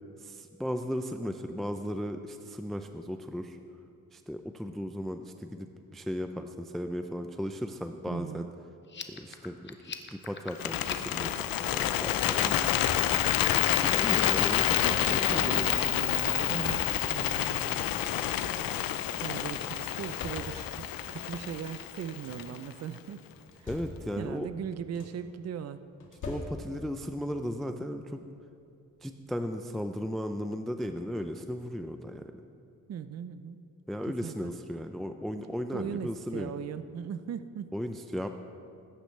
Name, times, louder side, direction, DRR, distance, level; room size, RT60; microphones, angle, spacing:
voice 1, 0.2-3.6 4.1-8.5 9.1-9.7 10.1-12.6 13.8-14.8 15.1-15.7 23.7-24.5 26.2-28.2 29.0-32.3 33.9-36.5 37.7-38.3, equal, ahead, 7 dB, 0.4 m, -36 dB
voice 2, 8.1-8.5 14.8-17.8 19.2-23.2 23.6-23.7 24.2-25.8 32.9-33.6 34.1-34.5 35.7-37.7, right 8 dB, 50° right, 12 dB, 0.5 m, -39 dB
sound 1, 8.8-13.9, left 5 dB, 35° left, 0.8 m, -42 dB
Bird, 10.5-22.7, left 12 dB, 85° left, 0.6 m, -28 dB
sound 2, 12.9-13.4 14.4-15.2 16.1-17.3 17.9-18.0 18.2-18.8 19.7-20.9 21.8-22.6 23.3-24.4 24.6-25.4 26.0-27.0 28.3-28.4 28.9-29.1, left 2 dB, 65° left, 2.2 m, -46 dB
20.0 x 10.0 x 3.2 m, 2.6 s
cardioid pair, 120°, 33 cm